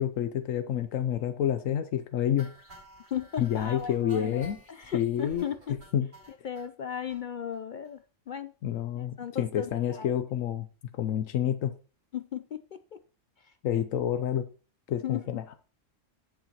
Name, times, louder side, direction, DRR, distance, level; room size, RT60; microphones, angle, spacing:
voice 1, 0.0-2.5 3.4-4.6 4.9-5.5 5.9-6.1 8.6-10.7 10.9-11.7 13.6-14.5 14.9-15.4, left 10 dB, 90° left, 10 dB, 1.1 m, -28 dB
sound 1, 2.4-6.7 7.1-7.2 7.5-7.6 7.8-8.0 8.3-8.4, equal, 50° right, 5.7 m, -53 dB
voice 2, 3.1-5.8 6.4-8.5 9.0-10.1 12.1-13.0 13.4-13.5 15.0-15.2, left 8 dB, 60° left, 11 dB, 0.5 m, -36 dB
17.0 x 6.9 x 2.9 m, 0.36 s
omnidirectional pair, 1.3 m